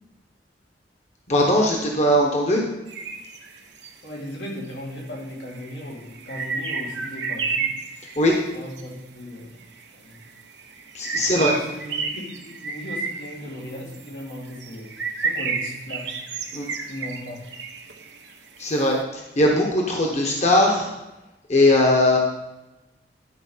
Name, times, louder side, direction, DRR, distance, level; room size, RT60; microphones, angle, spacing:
voice 1, 1.3-2.6 8.2-8.3 10.9-11.5 16.5-16.7 18.6-20.9 21.5-22.2, left 1 dB, 40° left, 0 dB, 1.2 m, -19 dB
sound 1, 2.9-3.9 4.8-4.9 5.2-8.8 9.6-9.8 10.1-18.8, right 4 dB, 90° right, 1.2 m, -31 dB
voice 2, 4.0-7.7 8.5-9.6 10.0-10.2 11.1-16.1 16.9-17.4, left 1 dB, 85° left, -3 dB, 2.5 m, -37 dB
11.0 x 4.7 x 5.6 m, 0.99 s
head